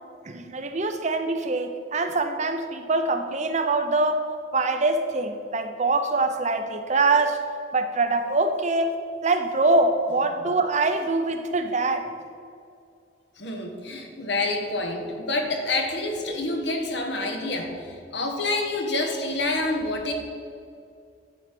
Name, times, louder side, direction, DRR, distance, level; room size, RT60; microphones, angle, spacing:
voice 1, 0.2-7.4 7.7-9.0 9.2-12.1, right 3 dB, 40° right, 7 dB, 0.7 m, -24 dB
voice 2, 13.4-20.1, left 2 dB, 65° left, 3 dB, 1.4 m, -27 dB
11.0 x 4.7 x 7.6 m, 2.4 s
head